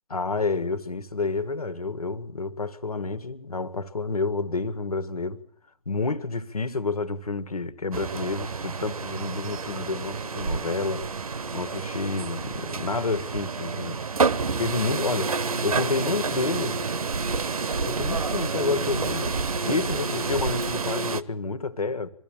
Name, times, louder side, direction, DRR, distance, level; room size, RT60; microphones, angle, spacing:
voice 1, 0.1-5.4 5.9-14.0 14.6-15.4 15.6-16.8 17.8-22.1, left 3 dB, 80° left, 1.8 m, -29 dB
sound 1, 7.9-21.2, right 4 dB, 75° right, 1.0 m, -29 dB
24.0 x 14.5 x 8.9 m
figure-of-eight pair, 130°, 19 cm